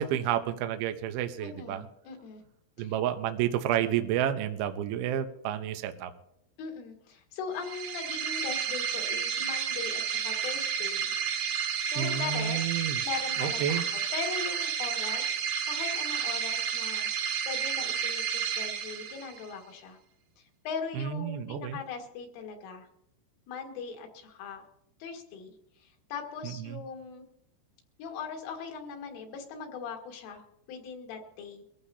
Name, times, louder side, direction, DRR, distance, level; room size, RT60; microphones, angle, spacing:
voice 1, 0.0-1.8 2.8-6.1 12.0-13.0 13.4-13.8 21.0-21.8 26.4-26.8, right 10 dB, 85° right, 8 dB, 2.1 m, -30 dB
voice 2, 1.4-2.4 2.8-3.0 6.6-11.1 11.8-12.6 13.0-20.0 20.7-22.9 23.5-24.7 25.0-27.3 28.0-31.6, left 6 dB, 75° left, 3 dB, 4.3 m, -40 dB
sound 1, 7.6-19.5, right 7 dB, 65° right, 3.4 m, -31 dB
23.5 x 14.5 x 2.8 m, 0.78 s
omnidirectional pair, 5.8 m